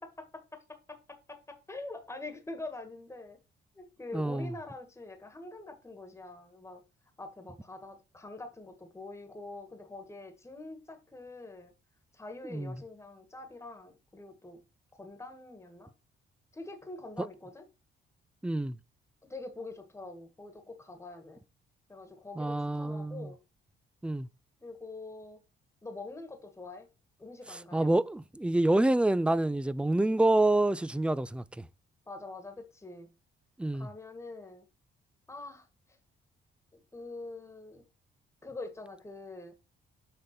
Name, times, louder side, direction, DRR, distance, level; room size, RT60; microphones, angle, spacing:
voice 1, 0.0-3.4 3.7-6.8 7.2-11.7 12.1-14.6 14.9-15.9 16.5-17.7 19.3-21.4 21.9-23.4 24.6-25.4 25.8-26.9 27.2-27.9 32.1-33.1 33.7-34.6 35.3-35.7 36.7-37.8 38.4-39.5, left 2 dB, 15° left, 1.5 m, -45 dB
voice 2, 4.1-4.5 12.5-12.7 18.4-18.8 22.4-23.3 24.0-24.3 27.5-31.7 33.6-33.9, right 2 dB, 5° right, 0.4 m, -27 dB
6.6 x 3.8 x 5.8 m
cardioid pair, 90°, 20 cm